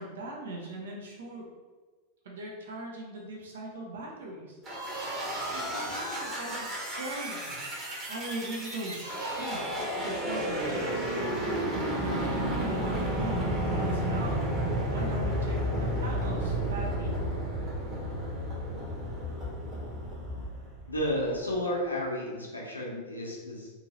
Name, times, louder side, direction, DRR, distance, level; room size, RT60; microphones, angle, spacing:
voice 1, 0.0-1.4 2.2-4.6 5.5-7.6 8.1-11.1 12.0-14.4 14.8-17.1, right 1 dB, 60° right, -2 dB, 0.6 m, -40 dB
sound 1, 4.6-21.3, right 1 dB, 25° right, 1.1 m, -32 dB
voice 2, 20.9-23.7, equal, 80° left, -3 dB, 0.7 m, -32 dB
2.7 x 2.6 x 2.8 m, 1.4 s
figure-of-eight pair, 90°, 0 cm